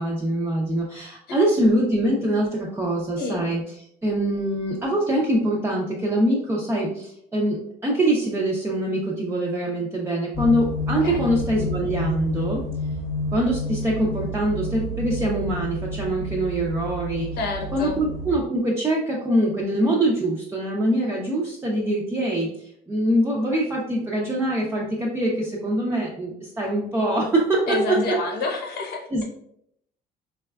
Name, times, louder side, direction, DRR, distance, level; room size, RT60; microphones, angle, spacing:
voice 1, 0.0-3.6 4.0-12.6 13.3-17.3 17.7-28.0 29.1-29.2, right 1 dB, 15° right, -3 dB, 0.5 m, -24 dB
sound 1, 10.3-18.3, equal, 20° left, 0.9 m, -30 dB
voice 2, 17.4-18.0 27.7-29.2, left 3 dB, 70° left, 2 dB, 0.8 m, -28 dB
3.9 x 2.2 x 2.2 m, 0.72 s
cardioid pair, 110°, 17 cm